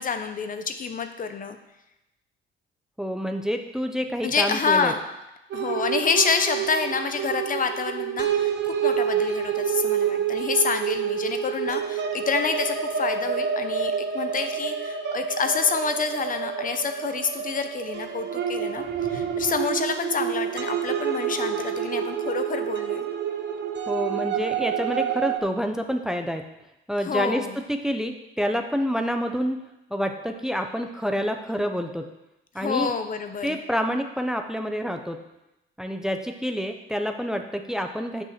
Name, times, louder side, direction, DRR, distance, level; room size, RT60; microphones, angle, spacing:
voice 1, 0.0-1.6 4.2-5.0 5.5-23.1 27.0-27.6 32.6-33.6, left 5 dB, 45° left, 8 dB, 0.8 m, -28 dB
voice 2, 3.0-4.9 23.9-26.4 26.9-29.6 29.9-32.1 32.5-32.9 33.4-35.2 35.8-38.2, equal, 5° right, 5 dB, 0.8 m, -28 dB
sound 1, 5.5-25.4, right 8 dB, 65° right, 1.0 m, -28 dB
sound 2, 18.5-19.9, equal, 65° left, 2.9 m, -46 dB
7.5 x 6.2 x 5.9 m, 0.92 s
cardioid pair, 90°, 20 cm